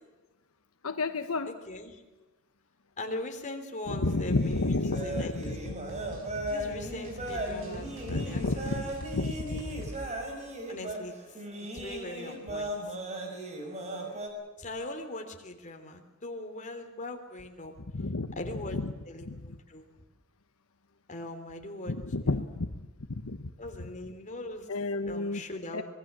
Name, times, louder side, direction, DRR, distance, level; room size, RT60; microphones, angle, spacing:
voice 1, 0.8-1.5 3.9-5.7 8.1-9.9 17.9-18.4 18.7-18.9 19.3-19.4 21.9-22.7 23.1-23.5 24.7-25.4 25.7-25.8, left 2 dB, 75° left, 8 dB, 1.1 m, -31 dB
voice 2, 1.7-2.0 3.0-5.6 6.5-8.9 9.5-9.7 10.7-11.1 11.6-12.7 14.6-17.7 18.4-18.8 19.1-19.8 21.1-22.0 23.6-24.7 25.1-25.8, left 2 dB, 35° left, 4 dB, 3.3 m, -40 dB
sound 1, 4.0-14.3, right 1 dB, 30° right, 5.2 m, -37 dB
sound 2, 4.5-10.1, equal, 65° right, 6.4 m, -44 dB
25.5 x 21.5 x 7.5 m, 1.2 s
head